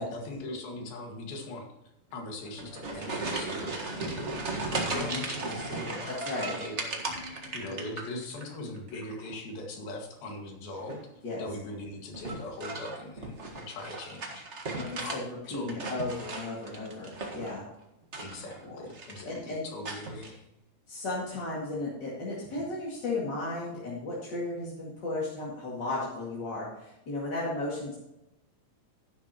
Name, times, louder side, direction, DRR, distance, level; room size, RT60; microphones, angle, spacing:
voice 1, 0.0-1.7 2.1-11.0 11.4-14.5 15.0-15.2 15.5-15.8 18.2-20.5, left 2 dB, 85° left, 2 dB, 3.8 m, -40 dB
sound 1, 2.4-8.5 8.8-9.3 10.7-11.1 12.1-15.2 15.5-17.6 18.0-18.6 18.9-19.4 19.8-20.3, right 3 dB, 65° right, 0.6 m, -36 dB
voice 2, 4.7-5.2 6.3-6.5 11.2-11.4 14.7-17.6 18.7-18.8 19.3-19.6 20.9-27.9, left 2 dB, 35° left, -6 dB, 2.6 m, -35 dB
11.5 x 11.5 x 3.0 m, 0.91 s
omnidirectional pair, 4.0 m